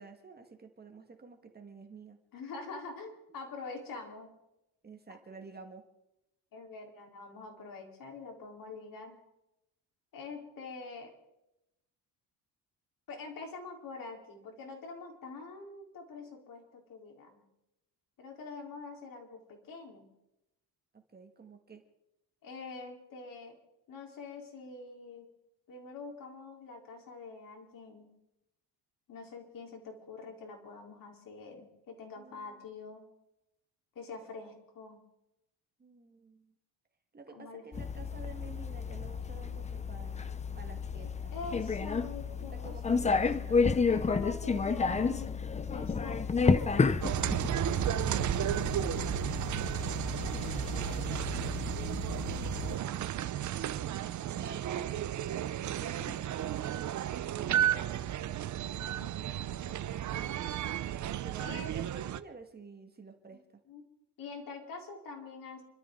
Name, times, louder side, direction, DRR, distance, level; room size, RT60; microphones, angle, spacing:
voice 1, 0.0-2.2 4.8-5.8 20.9-21.8 32.2-32.6 35.8-36.5 37.1-40.2 40.6-41.4 42.4-43.9 48.7-51.8 52.5-53.3 54.4-54.9 55.6-56.8 57.3-58.3 61.2-63.6, right 4 dB, 25° right, 5 dB, 1.8 m, -51 dB
voice 2, 2.3-4.3 6.5-9.2 10.1-11.1 13.1-17.4 18.2-20.0 22.4-23.6 23.9-25.3 25.7-28.1 29.1-33.0 33.9-35.0 37.3-37.6 40.9-43.2 43.9-45.3 45.7-47.8 55.8-56.3 58.8-60.4 61.4-61.9 63.3-63.4 63.7-63.8 64.2-65.6, left 4 dB, 55° left, 1 dB, 4.1 m, -45 dB
sound 1, 37.7-52.8, left 5 dB, 15° left, 0.6 m, -32 dB
sound 2, 47.0-62.2, right 11 dB, 45° right, 0.7 m, -33 dB
29.5 x 12.5 x 3.9 m, 0.89 s
cardioid pair, 125°, 40 cm